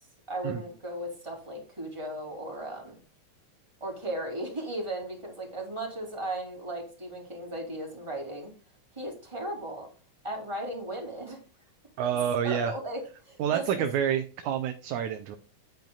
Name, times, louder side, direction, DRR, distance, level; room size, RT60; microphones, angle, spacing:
voice 1, 0.3-3.0 3.8-8.5 8.9-9.9 10.2-11.4 12.4-13.9 14.4-14.5, right 1 dB, 10° right, -1 dB, 2.7 m, -36 dB
voice 2, 12.0-12.7 13.4-15.4, right 9 dB, 80° right, 6 dB, 2.1 m, -28 dB
9.4 x 9.1 x 2.4 m, 0.36 s
omnidirectional pair, 3.4 m